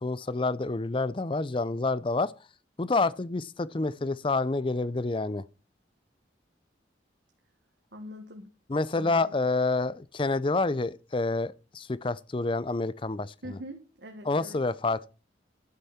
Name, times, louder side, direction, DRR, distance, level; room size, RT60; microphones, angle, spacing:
voice 1, 0.0-2.3 2.8-5.4 8.7-13.6 14.2-15.1, left 3 dB, 30° left, 0.5 m, -28 dB
voice 2, 7.9-8.5 8.9-9.4 13.4-14.6, equal, 70° right, 1.7 m, -43 dB
11.5 x 8.9 x 4.2 m
head